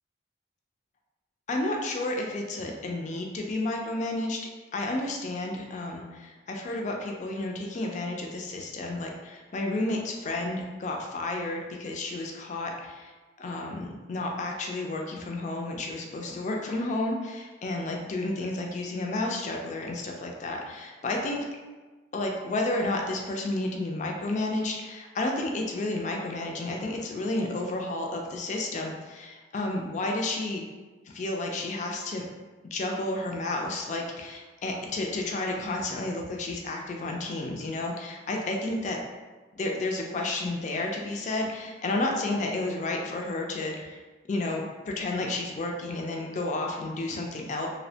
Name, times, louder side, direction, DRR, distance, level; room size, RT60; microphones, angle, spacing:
voice 1, 1.5-4.4 4.7-13.1 13.4-21.4 22.1-30.6 31.1-32.3 32.6-39.0 39.6-44.0 44.3-47.7, left 2 dB, 40° left, 1 dB, 0.3 m, -31 dB
2.7 x 2.1 x 2.7 m, 1.3 s
head